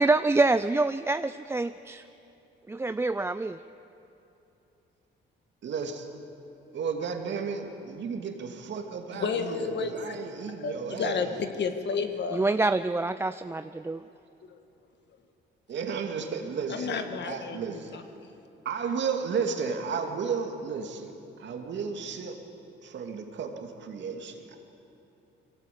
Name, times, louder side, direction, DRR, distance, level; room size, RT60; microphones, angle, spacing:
voice 1, 0.0-2.0 2.7-3.6 12.3-14.0, right 3 dB, 10° right, 12 dB, 0.4 m, -26 dB
voice 2, 5.6-6.1 6.7-11.4 15.7-18.0 18.6-21.1 21.4-22.4 22.8-24.6, right 5 dB, 65° right, 4 dB, 2.4 m, -33 dB
voice 3, 9.1-10.2 10.6-12.5 16.7-18.3, left 5 dB, 60° left, 7 dB, 1.8 m, -32 dB
22.0 x 17.0 x 8.5 m, 2.9 s
cardioid pair, 90°, 20 cm